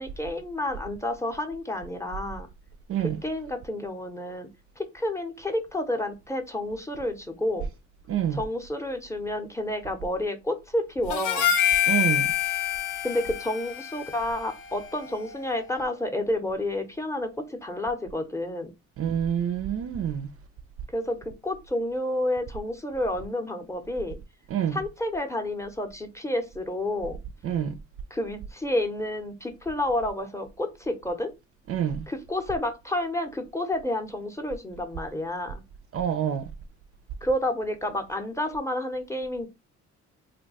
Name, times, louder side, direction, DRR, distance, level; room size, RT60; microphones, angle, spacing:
voice 1, 0.0-2.5 3.0-4.5 4.8-7.7 8.3-11.5 13.0-18.7 20.9-24.2 24.7-27.2 28.1-31.3 32.1-35.6 37.2-39.5, left 1 dB, 10° left, 0.7 m, -30 dB
voice 2, 8.1-8.4 11.9-12.3 19.0-20.3 24.5-24.8 27.4-27.7 31.7-32.0 35.9-36.5, right 9 dB, 50° right, 0.4 m, -27 dB
Harmonica, 11.1-15.6, left 10 dB, 90° left, 0.8 m, -27 dB
2.6 x 2.2 x 4.0 m
cardioid pair, 90°, 30 cm